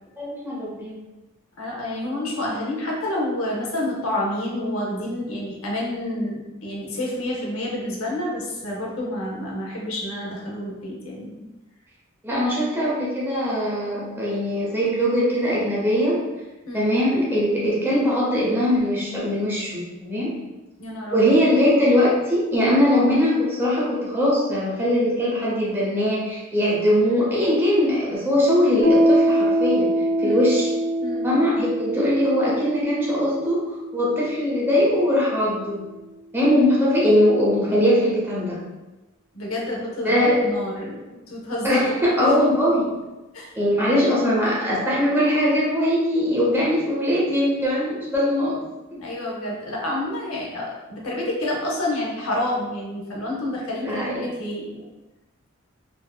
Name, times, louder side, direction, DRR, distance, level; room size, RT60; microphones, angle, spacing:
voice 1, 0.2-1.0 12.2-16.2 16.7-20.4 21.1-30.7 31.2-33.6 33.9-35.9 36.3-38.6 40.0-40.5 41.6-42.8 43.5-48.6 48.9-49.0 53.8-54.2, equal, 10° right, -7 dB, 0.7 m, -21 dB
voice 2, 1.6-11.4 16.7-16.9 20.8-21.4 30.2-30.5 31.0-31.3 39.3-41.9 42.2-42.4 43.3-43.5 49.0-54.9, left 1 dB, 75° left, -2 dB, 0.7 m, -28 dB
Piano, 28.8-36.1, equal, 80° right, 0.6 m, -24 dB
2.6 x 2.4 x 2.3 m, 1.1 s
head